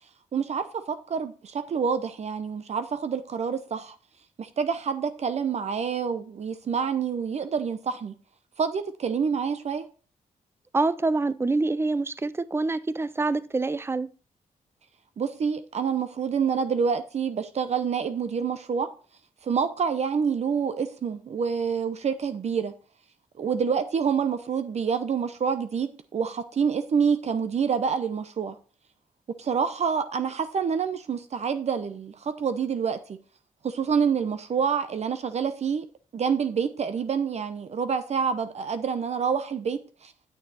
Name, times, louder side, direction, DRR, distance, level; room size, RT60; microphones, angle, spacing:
voice 1, 0.3-4.0 4.4-8.1 8.6-9.9 15.2-18.9 19.4-22.7 23.4-28.6 29.4-33.2 33.6-35.8 36.1-40.1, right 6 dB, 50° right, 0.7 m, -27 dB
voice 2, 10.7-14.1, right 3 dB, 15° right, 0.5 m, -26 dB
9.0 x 6.5 x 4.2 m
cardioid pair, 95°, 14 cm